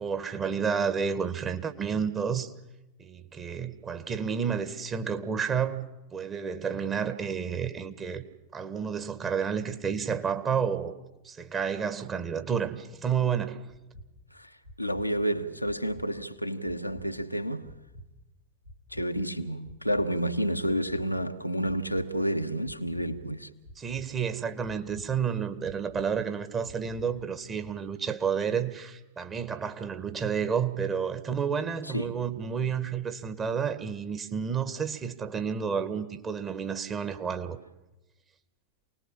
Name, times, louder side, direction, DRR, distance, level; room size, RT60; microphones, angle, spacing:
voice 1, 0.0-2.5 3.0-8.2 8.5-10.9 11.2-13.6 23.8-37.6, right 7 dB, 25° right, 1.8 m, -30 dB
sound 1, 13.7-14.1 14.6-15.1 15.6-16.1 16.6-17.1 17.6-18.1 18.6-19.1 19.6-20.1 20.6-21.1 21.6-22.1 22.6-23.1 23.6-24.1 24.6-25.1 25.6-26.1 26.6-27.1 27.6-27.7, equal, 75° right, 3.5 m, -47 dB
voice 2, 14.8-17.7 18.9-23.5 31.9-32.2, equal, 90° left, 1.3 m, -30 dB
28.5 x 19.5 x 7.4 m
figure-of-eight pair, 90°, 0 cm